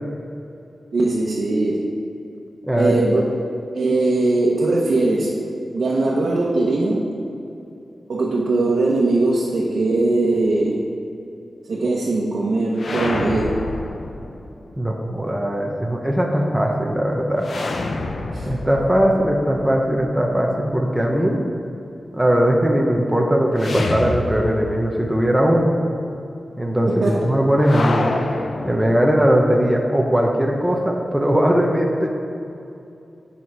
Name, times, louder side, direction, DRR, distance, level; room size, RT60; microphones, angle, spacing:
voice 1, 0.9-1.9 2.7-3.2 3.7-5.3 5.7-7.0 8.1-10.8 11.7-13.6 18.3-18.5 26.8-27.2, right 2 dB, 65° right, -5 dB, 1.1 m, -20 dB
voice 2, 2.6-3.0 14.8-17.5 18.4-21.4 22.1-25.7 26.6-28.1 28.6-32.1, equal, 5° right, -1 dB, 0.8 m, -19 dB
sound 1, 12.7-14.7 17.4-20.4 23.6-25.0 25.2-25.3 27.6-29.4, left 2 dB, 60° left, 0.7 m, -28 dB
10.5 x 5.7 x 4.7 m, 2.7 s
wide cardioid pair, 130°, 0 cm